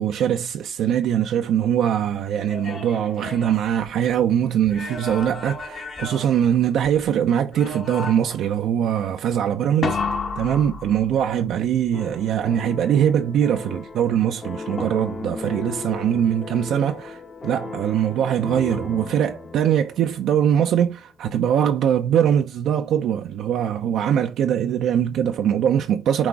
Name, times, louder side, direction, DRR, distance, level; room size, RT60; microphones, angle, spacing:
voice 1, 0.0-10.0 10.4-26.3, right 9 dB, 70° right, 0.4 m, -22 dB
sound 1, 2.3-4.2 4.7-7.1 7.5-8.5 9.8-11.4 14.8-15.4, left 4 dB, 50° left, 1.3 m, -32 dB
sound 2, 11.9-21.0, left 4 dB, 35° left, 0.9 m, -37 dB
6.0 x 2.4 x 3.5 m
supercardioid pair, 70°, 0 cm